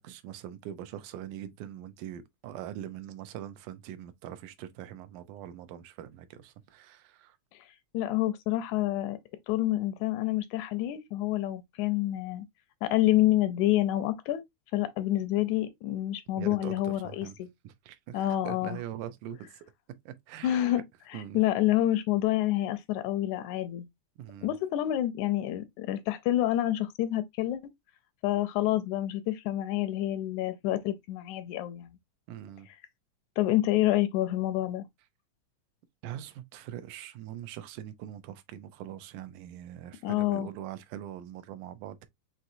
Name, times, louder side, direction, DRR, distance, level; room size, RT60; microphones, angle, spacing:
voice 1, 0.0-7.4 16.4-17.4 17.6-19.6 20.1-20.7 21.1-21.4 24.2-24.5 31.5-31.6 32.3-32.7 36.0-42.1, right 11 dB, 85° right, 2.2 m, -42 dB
voice 2, 7.9-9.2 9.5-12.4 12.8-14.4 14.7-17.5 18.1-18.8 20.4-20.8 21.1-23.9 24.4-27.6 28.2-31.9 33.4-34.9 40.0-40.5, left 14 dB, 80° left, 1.9 m, -28 dB
6.0 x 2.8 x 2.5 m
omnidirectional pair, 3.5 m